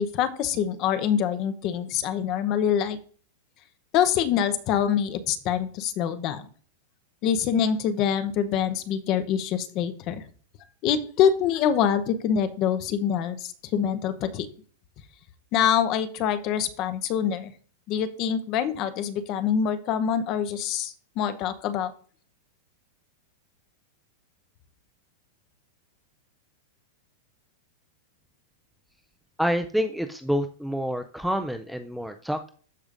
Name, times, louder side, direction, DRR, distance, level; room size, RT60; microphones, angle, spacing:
voice 1, 0.0-3.0 3.9-6.5 7.2-10.2 10.8-14.5 15.5-17.5 17.9-21.9, left 8 dB, 30° left, 11 dB, 0.7 m, -25 dB
voice 2, 29.4-32.5, equal, ahead, 7 dB, 0.3 m, -27 dB
13.5 x 5.0 x 2.5 m, 0.43 s
supercardioid pair, 175°, 0 cm